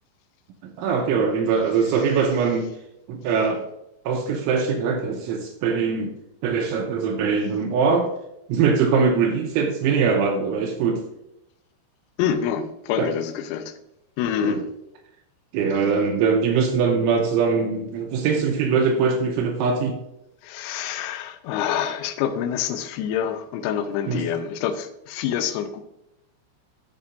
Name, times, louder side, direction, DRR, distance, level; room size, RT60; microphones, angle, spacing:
voice 1, 0.8-2.7 3.1-3.6 4.1-6.1 6.4-8.1 8.5-11.0 13.0-13.1 14.4-14.6 15.5-20.0 24.1-24.2, right 5 dB, 85° right, 3 dB, 2.9 m, -22 dB
voice 2, 12.2-13.7 14.2-14.6 20.4-25.8, left 9 dB, 90° left, 9 dB, 3.4 m, -26 dB
13.0 x 5.9 x 2.5 m, 0.84 s
omnidirectional pair, 6.0 m